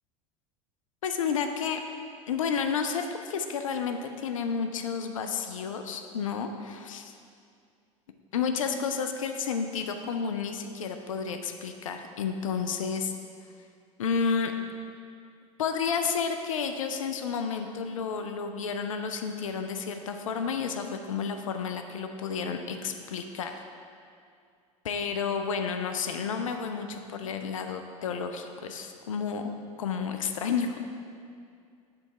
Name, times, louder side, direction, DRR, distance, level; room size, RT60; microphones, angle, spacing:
voice 1, 1.0-1.8 2.3-7.1 8.3-13.1 14.0-14.5 15.6-23.6 24.8-30.8, left 6 dB, 80° left, 6 dB, 0.4 m, -31 dB
6.9 x 3.9 x 4.5 m, 2.3 s
hypercardioid pair, 75°, 17 cm